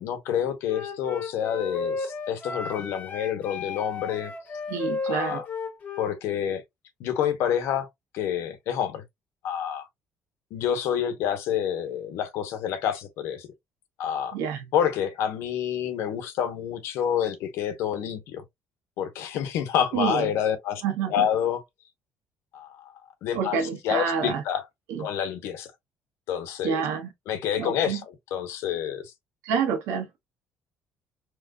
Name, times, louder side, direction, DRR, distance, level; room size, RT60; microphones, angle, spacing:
voice 1, 0.0-4.3 5.0-5.4 6.0-6.6 7.0-7.9 8.1-9.0 9.4-9.9 10.5-13.5 14.0-14.4 14.7-18.4 19.0-20.8 21.1-21.6 22.5-22.9 23.2-23.6 23.8-24.6 25.0-25.7 26.3-26.8 27.3-28.0 28.3-29.0, left 9 dB, 70° left, 0.9 m, -28 dB
Wind instrument woodwind instrument, 0.7-6.2, left 4 dB, 35° left, 1.0 m, -34 dB
voice 2, 4.7-5.4 14.3-14.7 19.9-20.3 20.8-21.3 23.3-24.4 24.9-25.1 26.6-27.1 27.6-28.0 29.4-30.1, right 7 dB, 90° right, 1.2 m, -28 dB
3.7 x 3.1 x 2.2 m
cardioid pair, 165°, 5 cm